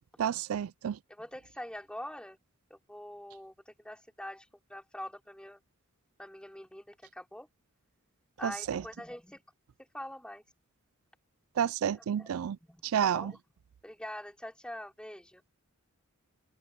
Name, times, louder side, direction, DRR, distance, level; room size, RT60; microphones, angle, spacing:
voice 1, 0.2-1.0 8.4-8.8 11.6-12.6 12.9-13.3, right 8 dB, 70° right, 0.3 m, -30 dB
voice 2, 1.1-2.4 2.7-5.6 6.2-7.5 8.4-9.4 9.8-10.4 11.9-12.3 12.7-13.4 13.8-15.4, left 1 dB, 5° left, 4.8 m, -44 dB
head